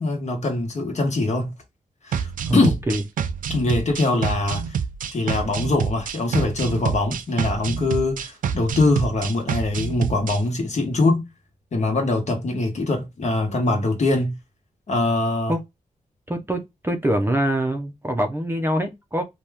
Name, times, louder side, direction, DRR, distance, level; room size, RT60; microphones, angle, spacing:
voice 1, 0.0-1.5 2.0-2.7 3.5-4.8 5.1-11.2 11.7-14.3 14.9-15.5, left 2 dB, 55° left, 1.1 m, -23 dB
sound 1, 2.1-10.4, right 7 dB, 80° right, 0.4 m, -27 dB
voice 2, 2.5-3.0 15.5-15.6 16.3-19.2, right 1 dB, 15° right, 0.5 m, -24 dB
2.8 x 2.3 x 3.3 m
wide cardioid pair, 90°, 14 cm